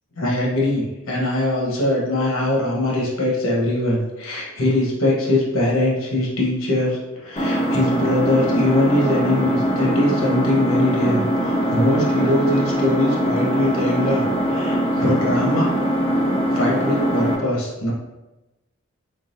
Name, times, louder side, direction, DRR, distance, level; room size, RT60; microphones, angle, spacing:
voice 1, 0.1-15.7 16.5-17.9, left 1 dB, 80° left, -4 dB, 1.2 m, -22 dB
Engine, 7.4-17.4, equal, 25° left, 0.6 m, -21 dB
3.9 x 3.4 x 2.6 m, 1.0 s
head